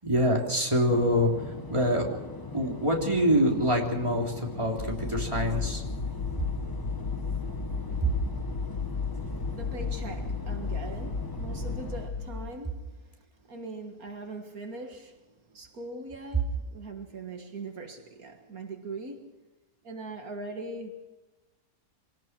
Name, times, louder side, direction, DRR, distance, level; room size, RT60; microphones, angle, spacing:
voice 1, 0.0-1.3 1.7-2.2 2.5-5.8, equal, 20° right, 3.6 m, -25 dB
sound 1, 0.9-12.1, left 3 dB, 20° left, 0.8 m, -41 dB
sound 2, 4.8-12.5, left 4 dB, 65° left, 2.4 m, -34 dB
voice 2, 9.0-19.4 19.8-21.0, right 2 dB, 75° right, 2.2 m, -41 dB
25.5 x 18.5 x 6.1 m
omnidirectional pair, 1.5 m